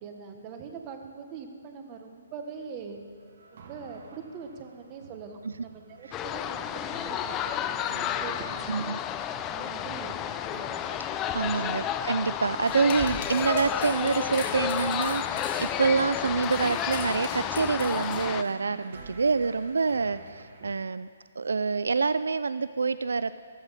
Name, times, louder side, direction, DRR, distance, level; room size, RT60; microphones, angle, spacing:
voice 1, 0.0-3.0 3.5-7.9 8.2-8.8 9.4-10.3 11.2-11.7, right 6 dB, 25° right, 5 dB, 1.2 m, -43 dB
sound 1, 2.7-12.4 13.2-20.7, right 4 dB, 50° right, 1.5 m, -50 dB
sound 2, 6.1-18.4, left 10 dB, 15° left, 0.4 m, -31 dB
voice 2, 8.7-9.0 10.9-21.1 21.4-23.4, right 4 dB, 85° right, 15 dB, 0.3 m, -27 dB
sound 3, 12.5-18.2, left 4 dB, 40° left, 2.2 m, -40 dB
15.0 x 13.0 x 4.1 m, 2.1 s
hypercardioid pair, 160°, 0 cm